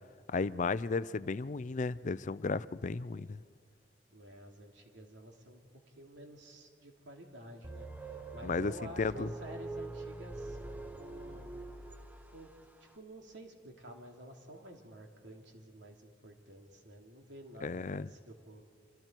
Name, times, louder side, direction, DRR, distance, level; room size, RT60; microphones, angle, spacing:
voice 1, 0.3-3.4 8.4-9.3 17.6-18.1, left 4 dB, 45° left, 0.4 m, -34 dB
voice 2, 4.1-5.6 6.0-10.6 11.0-11.5 12.3-12.5 12.9-18.6, right 1 dB, 85° right, 2.8 m, -51 dB
sound 1, 7.6-12.6, right 2 dB, 10° right, 0.9 m, -44 dB
26.5 x 25.5 x 4.5 m
head